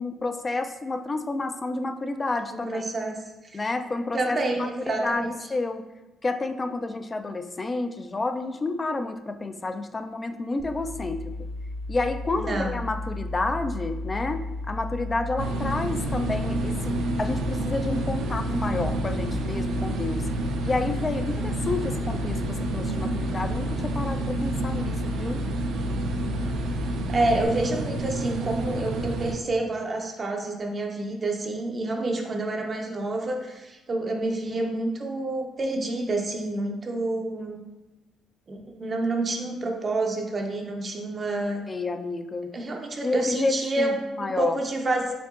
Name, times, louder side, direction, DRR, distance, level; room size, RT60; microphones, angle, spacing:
voice 1, 0.0-2.8 3.5-5.8 6.2-11.5 11.9-20.3 20.6-25.4 41.7-42.5 43.0-44.6, left 3 dB, 30° left, 8 dB, 0.3 m, -30 dB
voice 2, 2.5-3.2 3.4-3.6 4.1-5.3 12.4-12.7 27.1-37.6 38.5-41.6 42.5-45.1, right 2 dB, 40° right, 2 dB, 0.5 m, -28 dB
sound 1, 10.6-27.4, left 2 dB, 5° left, 0.8 m, -34 dB
sound 2, 15.4-29.3, right 2 dB, 85° right, 0.4 m, -29 dB
4.5 x 3.6 x 2.4 m, 1.1 s
cardioid pair, 90°, 0 cm